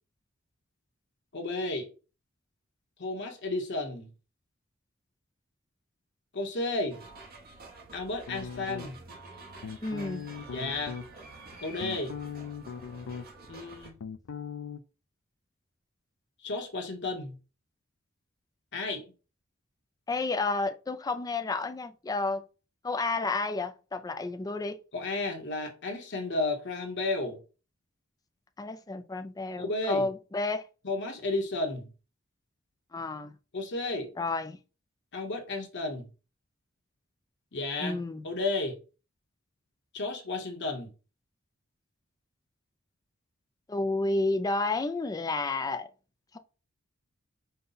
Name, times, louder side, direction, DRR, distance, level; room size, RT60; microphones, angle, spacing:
voice 1, 1.3-1.9 3.0-4.1 6.3-7.0 7.9-9.0 10.5-10.9 11.6-12.1 13.5-14.0 16.4-17.4 18.7-19.0 24.9-27.4 29.6-30.1 30.8-31.9 33.5-34.1 35.1-36.1 37.5-38.0 38.2-38.8 39.9-40.9, left 2 dB, 60° left, 1.0 m, -32 dB
sound 1, 6.9-13.9, right 2 dB, 50° right, 1.1 m, -48 dB
sound 2, 8.3-9.1 9.6-11.1 11.5-13.5 13.7-14.8, left 7 dB, 85° left, 0.4 m, -39 dB
voice 2, 9.8-10.3 20.1-22.4 22.8-24.8 28.6-30.6 32.9-33.3 34.2-34.6 37.8-38.2 43.7-45.9, left 3 dB, 20° left, 0.4 m, -31 dB
5.4 x 2.2 x 3.9 m
head